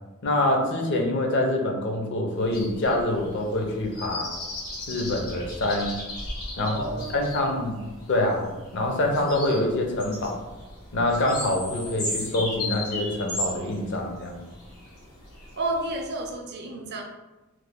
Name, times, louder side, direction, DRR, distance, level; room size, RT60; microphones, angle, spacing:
voice 1, 0.2-4.3 4.9-6.0 6.6-6.8 7.1-10.4 10.9-14.4, left 1 dB, 55° left, 1 dB, 0.6 m, -25 dB
sound 1, 2.4-16.3, left 1 dB, 80° left, 1.2 m, -36 dB
voice 2, 6.5-7.6 15.5-17.0, right 2 dB, 45° right, 2 dB, 0.5 m, -32 dB
3.1 x 2.1 x 3.6 m, 1.1 s
head